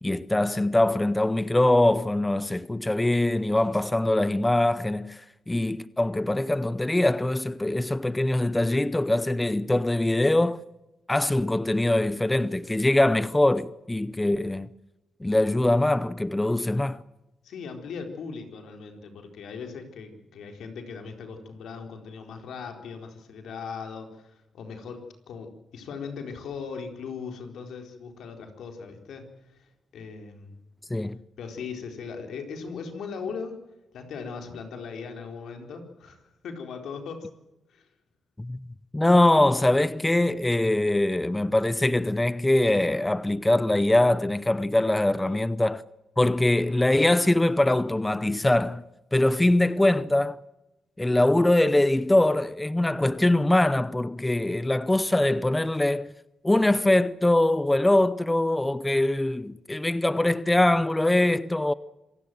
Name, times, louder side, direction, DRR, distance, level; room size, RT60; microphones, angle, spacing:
voice 1, 0.0-10.6 11.1-14.7 15.2-17.0 30.9-31.2 38.4-38.6 38.9-45.8 46.2-48.8 49.1-50.4 51.0-56.1 56.4-61.7, left 1 dB, 15° left, 0.7 m, -23 dB
voice 2, 17.4-29.3 29.6-30.6 31.4-33.6 33.9-36.2 36.4-37.3 37.7-37.8 45.2-45.4, left 5 dB, 80° left, 4.2 m, -39 dB
26.5 x 17.0 x 7.8 m
cardioid pair, 90°, 0 cm